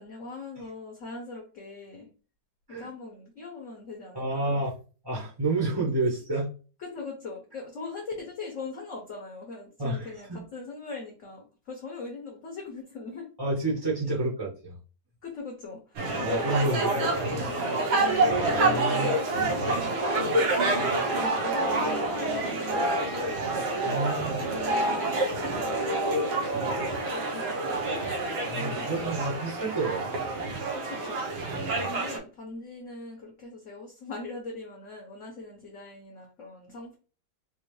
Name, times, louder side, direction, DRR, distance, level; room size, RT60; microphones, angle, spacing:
voice 1, 0.0-2.1 2.7-4.7 6.8-13.3 15.2-17.5 17.9-18.3 18.9-20.9 21.2-23.4 23.8-28.3 28.5-29.0 30.9-37.0, left 3 dB, 55° left, 0 dB, 0.9 m, -41 dB
voice 2, 4.1-4.7 5.0-6.5 9.8-10.4 13.4-14.8 16.2-16.9 18.6-19.1 23.8-24.4 28.5-30.1 31.7-31.9, right 2 dB, 20° right, -4 dB, 0.6 m, -29 dB
sound 1, 16.0-32.2, right 2 dB, 85° right, 1.8 m, -27 dB
4.3 x 2.5 x 3.1 m, 0.36 s
omnidirectional pair, 2.1 m